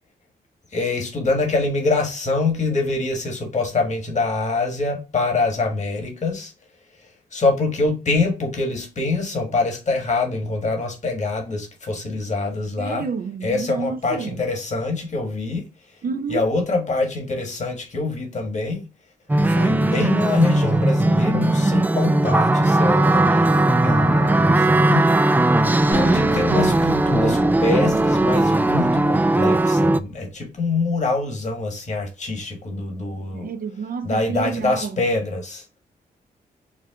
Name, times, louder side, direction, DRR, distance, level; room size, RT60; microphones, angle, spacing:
voice 1, 0.7-6.5 7.0-13.1 13.4-16.0 16.3-18.9 19.4-25.1 25.6-33.5 34.0-35.6, left 3 dB, 45° left, 1.6 m, -25 dB
voice 2, 12.8-14.3 16.0-16.5 33.3-35.0, right 5 dB, 60° right, 0.6 m, -29 dB
sound 1, 19.3-30.0, right 2 dB, 10° right, 0.3 m, -18 dB
Acoustic guitar, 25.9-28.9, equal, 80° left, 2.6 m, -31 dB
5.2 x 2.2 x 3.6 m
cardioid pair, 70°, 17 cm